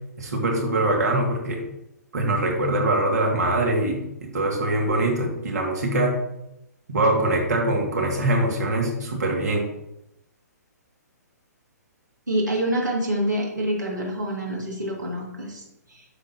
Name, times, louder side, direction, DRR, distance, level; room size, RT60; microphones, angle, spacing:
voice 1, 0.2-1.6 2.1-6.2 6.9-9.7, right 1 dB, 65° right, 1 dB, 2.3 m, -23 dB
voice 2, 12.3-16.0, right 1 dB, 85° right, -2 dB, 2.4 m, -27 dB
9.6 x 6.2 x 3.0 m, 0.86 s
figure-of-eight pair, 125°, 9 cm